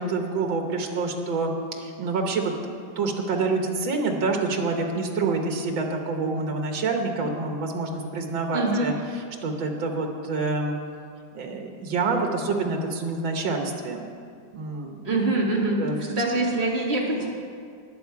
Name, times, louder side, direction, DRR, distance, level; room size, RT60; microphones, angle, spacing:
voice 1, 0.0-2.5 3.0-8.9 9.4-10.8 11.3-14.0 14.5-15.1 15.8-16.0, right 3 dB, 85° right, 3 dB, 2.0 m, -27 dB
voice 2, 8.5-8.9 15.0-17.3, right 2 dB, 35° right, -3 dB, 2.2 m, -24 dB
20.0 x 7.7 x 4.7 m, 2.2 s
omnidirectional pair, 2.1 m